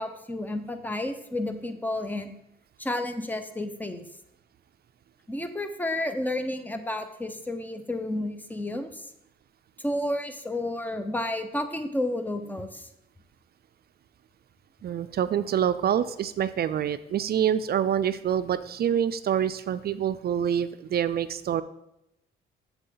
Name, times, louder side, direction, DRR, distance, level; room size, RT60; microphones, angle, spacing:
voice 1, 0.0-2.3 2.8-4.1 5.3-9.0 9.8-12.9, left 1 dB, 10° left, 8 dB, 0.9 m, -31 dB
voice 2, 14.8-21.6, right 9 dB, 50° right, 13 dB, 0.4 m, -26 dB
8.0 x 7.4 x 3.9 m, 0.83 s
cardioid pair, 90°, 20 cm